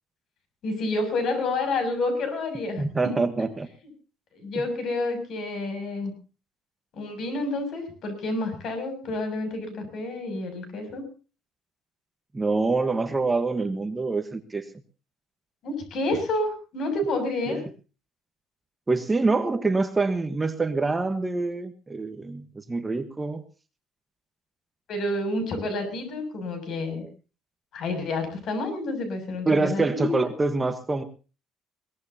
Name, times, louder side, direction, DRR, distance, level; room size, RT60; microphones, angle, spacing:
voice 1, 0.6-3.2 4.3-6.1 7.0-11.0 15.6-17.6 24.9-27.0 27.7-30.2, left 2 dB, 50° left, 8 dB, 6.9 m, -29 dB
voice 2, 2.8-3.7 12.3-14.6 17.5-17.6 18.9-23.4 29.5-31.0, right 3 dB, 15° right, 8 dB, 1.2 m, -25 dB
22.0 x 19.0 x 2.8 m, 0.35 s
cardioid pair, 150°, 0 cm